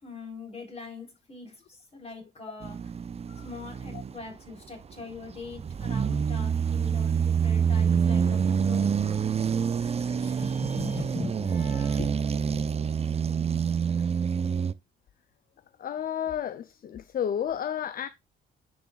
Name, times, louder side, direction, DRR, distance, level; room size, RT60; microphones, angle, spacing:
voice 1, 0.0-2.9 3.4-12.9, left 3 dB, 30° left, 4.2 m, -42 dB
sound 1, 2.6-4.3 4.9-14.7, right 7 dB, 30° right, 0.5 m, -27 dB
voice 2, 15.8-18.1, left 9 dB, 45° left, 0.5 m, -32 dB
10.5 x 6.1 x 2.3 m
cardioid pair, 90°, 20 cm